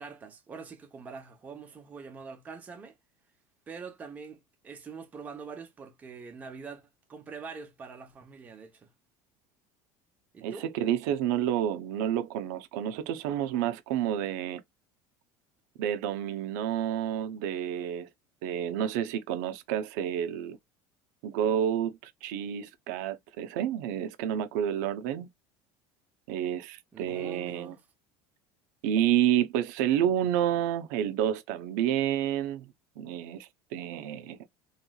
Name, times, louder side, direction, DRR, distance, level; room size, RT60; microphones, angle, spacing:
voice 1, 0.0-3.0 3.7-6.8 7.1-8.9 10.3-10.7 26.9-27.8, right 5 dB, 15° right, 0.8 m, -44 dB
voice 2, 10.4-14.6 15.8-18.1 18.4-20.6 21.2-25.3 26.3-27.7 28.8-34.5, right 10 dB, 85° right, 0.6 m, -29 dB
3.2 x 3.1 x 2.3 m
cardioid pair, 180°, 9 cm